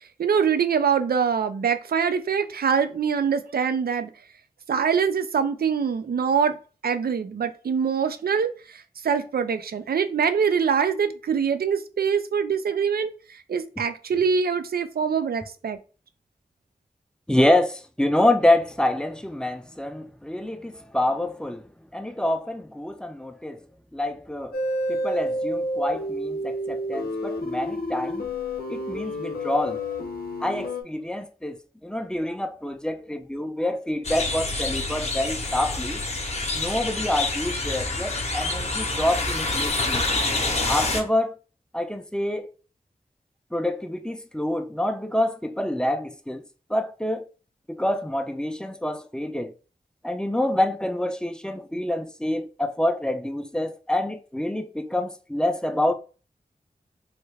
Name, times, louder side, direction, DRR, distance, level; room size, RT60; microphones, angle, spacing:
voice 1, 0.2-4.1 4.7-6.6 6.8-15.8, right 6 dB, 90° right, 0.4 m, -24 dB
voice 2, 17.3-23.6 23.9-24.6 24.9-28.2 28.7-29.8 30.4-36.0 36.5-40.0 40.7-41.3 41.7-42.5 43.5-47.3 47.7-49.5 50.0-55.9, left 1 dB, 5° left, 0.4 m, -27 dB
sound 1, 24.5-30.8, left 1 dB, 85° left, 0.6 m, -29 dB
sound 2, 34.0-41.0, left 2 dB, 45° left, 0.7 m, -27 dB
3.2 x 2.3 x 3.2 m
wide cardioid pair, 60°, 15 cm